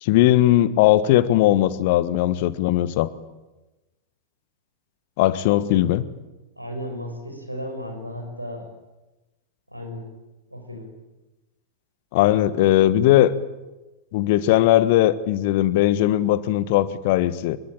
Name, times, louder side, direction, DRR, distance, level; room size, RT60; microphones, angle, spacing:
voice 1, 0.0-3.1 5.2-6.0 12.1-13.3 14.1-17.6, left 14 dB, 50° left, 16 dB, 1.4 m, -19 dB
voice 2, 6.6-8.6 9.7-10.0 10.5-10.9, equal, 90° right, 4 dB, 6.3 m, -34 dB
25.0 x 22.5 x 8.9 m, 1.1 s
figure-of-eight pair, 90°, 0 cm